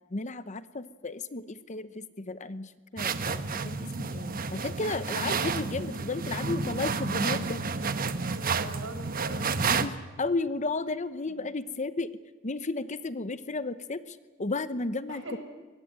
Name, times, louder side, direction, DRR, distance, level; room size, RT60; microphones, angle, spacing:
voice 1, 0.1-7.6 9.7-12.1 12.4-15.4, left 3 dB, 35° left, 13 dB, 0.9 m, -33 dB
sound 1, 3.0-9.9, right 5 dB, 45° right, 1.1 m, -30 dB
voice 2, 6.3-6.6 8.3-9.6 11.2-11.4 15.1-15.4, right 1 dB, 70° right, 5 dB, 5.9 m, -41 dB
24.0 x 20.0 x 9.1 m, 1.3 s
head